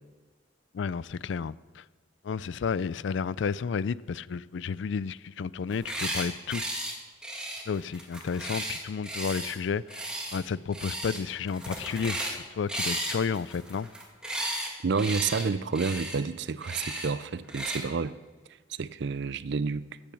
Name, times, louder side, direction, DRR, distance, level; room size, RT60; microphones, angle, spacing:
voice 1, 0.7-1.8 2.2-6.6 7.7-10.0 10.3-13.9, left 6 dB, 65° left, 0.4 m, -32 dB
sound 1, 5.7-6.2 6.5-6.9 7.2-9.5 9.9-10.4 10.7-11.2 11.5-12.4 12.7-14.7 15.0-15.4 15.7-16.2 16.6-17.1 17.5-17.8, right 1 dB, 5° right, 2.2 m, -34 dB
voice 2, 14.8-18.1 18.7-19.8, right 5 dB, 60° right, 0.5 m, -29 dB
14.5 x 8.8 x 7.1 m
head